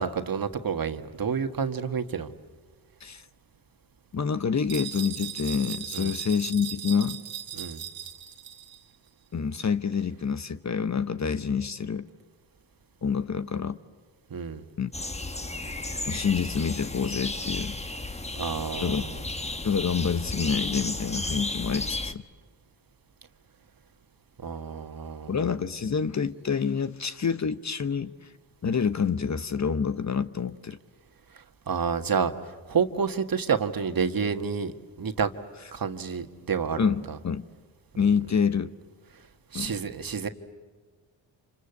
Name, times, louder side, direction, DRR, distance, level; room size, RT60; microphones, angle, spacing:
voice 1, 0.0-2.3 5.9-6.1 7.5-7.8 14.3-14.6 18.4-19.1 24.4-25.4 31.7-32.3 32.7-34.7 35.0-35.3 35.7-36.8 39.5-40.3, right 6 dB, 45° right, 8 dB, 1.8 m, -29 dB
voice 2, 4.1-7.2 9.3-12.1 13.0-13.8 14.8-14.9 16.1-17.8 18.8-19.0 19.6-22.2 25.3-28.1 28.6-30.8 36.8-37.4 38.0-38.7 39.5-39.7, left 6 dB, 35° left, 13 dB, 1.0 m, -27 dB
sound 1, 4.7-8.8, right 10 dB, 70° right, 1.9 m, -38 dB
sound 2, 14.9-22.1, left 2 dB, 15° left, 1.5 m, -33 dB
28.0 x 26.0 x 8.3 m, 1.4 s
supercardioid pair, 50°, 47 cm